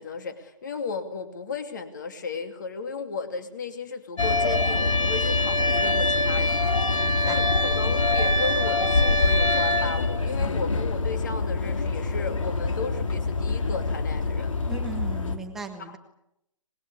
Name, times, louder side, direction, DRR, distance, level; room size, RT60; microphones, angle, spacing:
voice 1, 0.0-14.5 15.9-16.0, left 4 dB, 35° left, 8 dB, 2.6 m, -35 dB
sound 1, 4.2-15.4, left 2 dB, 65° left, 3.1 m, -24 dB
voice 2, 7.0-7.4 10.4-10.6 14.7-16.0, right 4 dB, ahead, 5 dB, 0.9 m, -38 dB
25.0 x 21.0 x 8.5 m, 0.81 s
hypercardioid pair, 175°, 18 cm